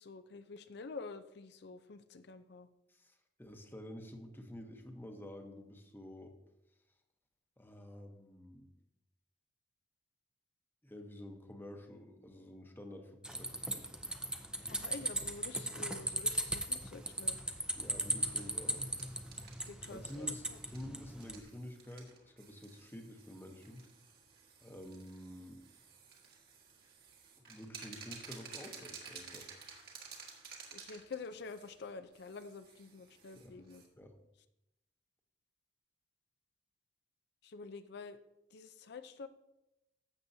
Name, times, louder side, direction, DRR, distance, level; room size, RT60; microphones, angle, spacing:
voice 1, 0.0-2.7 14.7-17.4 19.6-20.3 30.7-33.8 37.4-38.2 38.5-39.3, left 4 dB, 65° left, 10 dB, 0.5 m, -48 dB
voice 2, 2.9-6.3 7.6-8.7 10.8-13.8 17.7-18.9 19.9-23.8 24.6-25.6 27.4-29.5 33.3-33.6 34.0-34.1, left 1 dB, 10° left, 4 dB, 0.9 m, -49 dB
sound 1, 13.2-21.4, right 1 dB, 5° right, 0.6 m, -38 dB
sound 2, 16.3-33.9, right 6 dB, 55° right, 1.7 m, -55 dB
12.5 x 7.7 x 2.7 m, 0.90 s
head